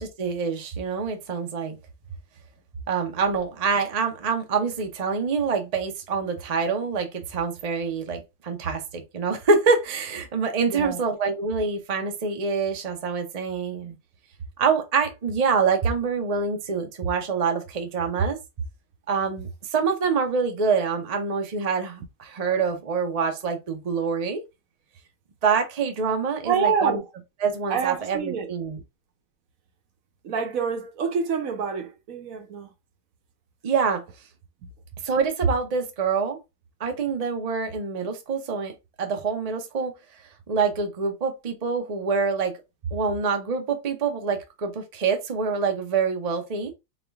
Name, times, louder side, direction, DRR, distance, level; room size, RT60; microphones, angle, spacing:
voice 1, 0.0-1.8 2.9-14.0 14.6-18.4 19.1-24.4 25.4-27.0 27.4-28.8 33.6-34.0 35.0-36.4 36.8-38.7 39.0-39.9 40.5-42.6 42.9-46.7, right 5 dB, 40° right, 0.5 m, -26 dB
voice 2, 10.7-11.0 26.5-27.1 27.7-28.5 30.2-32.7, right 6 dB, 65° right, 1.0 m, -27 dB
4.1 x 2.5 x 3.4 m
omnidirectional pair, 1.7 m